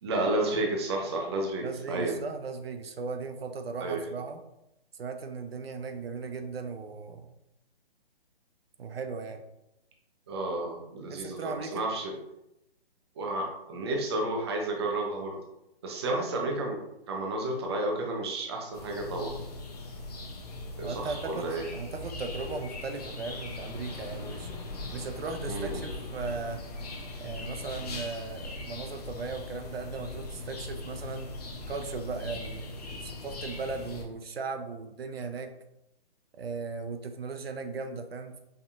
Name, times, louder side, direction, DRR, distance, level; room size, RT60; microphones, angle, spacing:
voice 1, 0.0-2.1 3.8-4.0 10.3-12.1 13.2-15.4 15.8-16.8 17.1-19.3 20.8-21.6 25.4-25.9, right 2 dB, 25° right, 0 dB, 0.6 m, -31 dB
voice 2, 1.6-4.4 4.9-7.3 8.8-9.4 11.1-11.9 20.8-24.5 24.9-26.6 27.2-31.3 31.7-35.5 36.3-38.4, right 4 dB, 70° right, 7 dB, 0.6 m, -37 dB
sound 1, 18.7-34.0, left 2 dB, 40° left, 0.7 m, -40 dB
5.5 x 2.8 x 2.4 m, 0.86 s
hypercardioid pair, 155°, 31 cm